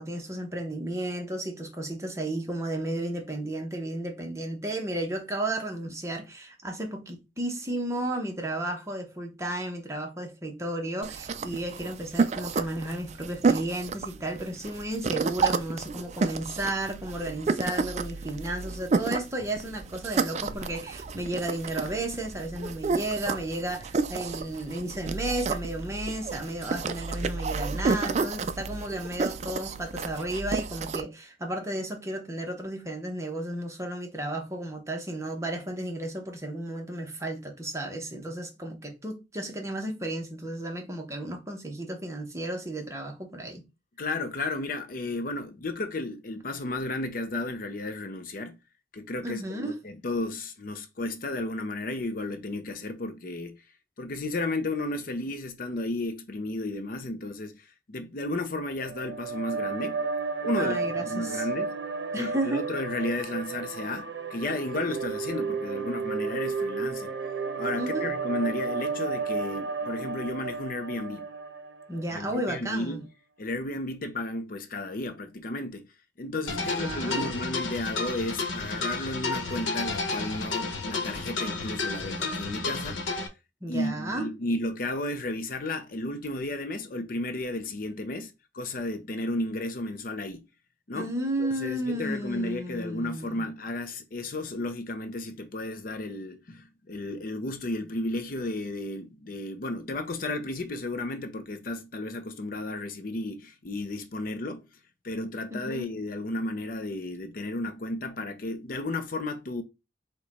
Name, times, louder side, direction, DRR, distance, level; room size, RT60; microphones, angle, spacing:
voice 1, 0.0-43.6 49.2-49.8 60.6-61.5 62.1-62.6 67.8-68.1 71.9-73.0 76.5-77.2 83.6-84.3 90.9-93.5 105.5-105.9, right 1 dB, 15° right, 0.8 m, -33 dB
sound 1, 11.0-31.0, right 4 dB, 35° right, 0.3 m, -31 dB
voice 2, 44.0-48.6 48.9-53.6 54.0-60.0 60.4-61.7 62.2-67.1 67.6-71.3 72.1-73.0 73.4-75.9 76.2-83.1 83.7-90.5 90.9-91.1 91.4-104.6 105.0-109.6, left 2 dB, 45° left, 0.5 m, -33 dB
sound 2, 58.8-72.1, right 4 dB, 70° right, 0.7 m, -32 dB
sound 3, 76.5-83.3, left 3 dB, 85° left, 1.0 m, -31 dB
4.8 x 2.2 x 4.1 m
head